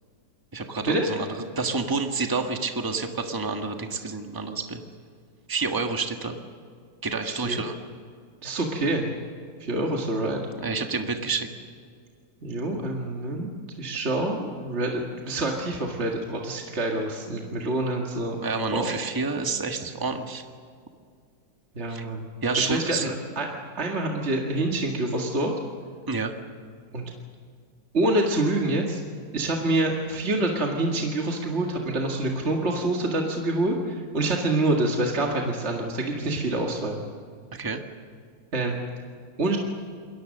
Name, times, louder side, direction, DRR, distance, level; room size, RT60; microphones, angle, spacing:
voice 1, 0.5-1.3 1.6-4.8 5.5-6.3 7.0-7.7 10.6-11.5 18.4-20.4 21.9-22.0 22.4-23.1 26.1-26.3 37.5-37.8, right 4 dB, 10° right, 4 dB, 1.4 m, -28 dB
voice 2, 7.2-7.6 8.4-9.1 9.6-10.4 12.4-13.5 13.8-18.4 18.7-19.0 21.8-22.3 22.6-23.5 23.8-25.5 26.9-27.1 27.9-29.0 29.3-37.0 38.5-38.8 39.4-39.6, right 2 dB, 35° right, 0 dB, 2.2 m, -26 dB
28.5 x 21.5 x 6.5 m, 2.1 s
omnidirectional pair, 2.0 m